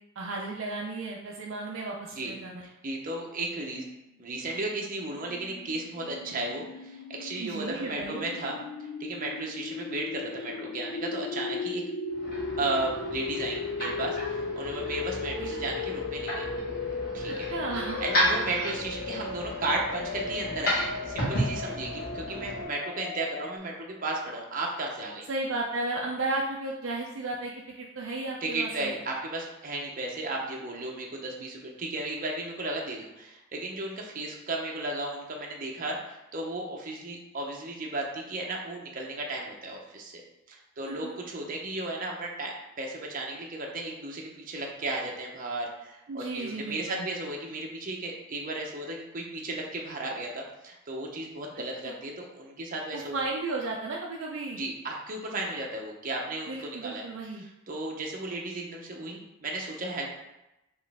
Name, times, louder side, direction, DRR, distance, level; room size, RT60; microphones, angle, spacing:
voice 1, 0.2-2.6 7.4-8.2 15.4-15.5 17.5-18.0 25.3-28.9 40.8-41.2 46.1-47.1 51.8-51.9 52.9-54.6 56.5-57.4, right 2 dB, 70° right, -1 dB, 0.5 m, -34 dB
voice 2, 2.6-3.9 4.2-11.8 12.6-16.5 17.1-17.5 18.0-25.3 28.4-40.2 40.5-53.2 54.5-57.1 57.7-60.1, right 2 dB, 40° right, -1 dB, 0.8 m, -34 dB
sound 1, 4.4-23.6, left 4 dB, 85° left, 0.4 m, -37 dB
sound 2, 12.1-22.6, equal, 50° left, 1.5 m, -33 dB
4.4 x 3.1 x 3.5 m, 0.93 s
head